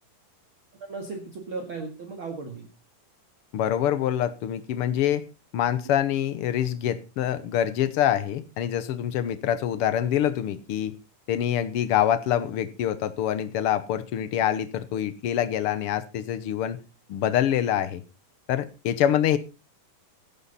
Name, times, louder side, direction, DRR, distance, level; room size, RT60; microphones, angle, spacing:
voice 1, 0.8-2.7 10.0-10.1 12.3-12.4, right 4 dB, 45° right, 3 dB, 2.4 m, -36 dB
voice 2, 3.5-5.2 5.5-10.9 11.3-16.8 17.1-18.0 18.5-19.4, left 10 dB, 80° left, 14 dB, 1.2 m, -25 dB
14.5 x 11.0 x 4.1 m, 0.31 s
omnidirectional pair, 3.8 m